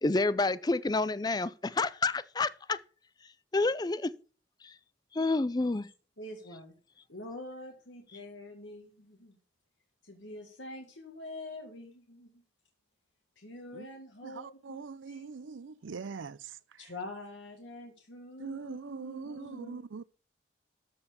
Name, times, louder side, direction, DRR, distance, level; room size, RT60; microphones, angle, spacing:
voice 1, 0.0-2.8 3.5-4.1 4.6-4.7 5.1-5.9, left 3 dB, 20° left, 0.5 m, -29 dB
voice 2, 6.2-6.7 7.1-9.4 10.0-12.4 13.4-15.9 16.8-19.9, left 1 dB, 85° left, 1.9 m, -46 dB
voice 3, 14.2-16.6 18.4-20.0, right 5 dB, 90° right, 0.5 m, -42 dB
13.5 x 4.6 x 7.0 m
head